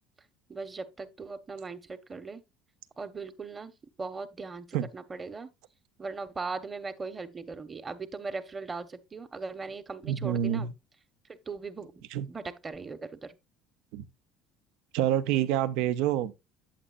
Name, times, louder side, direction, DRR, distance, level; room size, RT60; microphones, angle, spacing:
voice 1, 0.5-2.4 3.0-3.7 4.0-5.5 6.0-10.7 11.3-11.9 12.3-13.3, right 4 dB, 25° right, 1.0 m, -39 dB
voice 2, 10.0-10.7 12.1-12.3 13.9-14.1 14.9-16.3, right 11 dB, 75° right, 0.7 m, -27 dB
8.7 x 7.5 x 2.4 m
supercardioid pair, 100°, 0 cm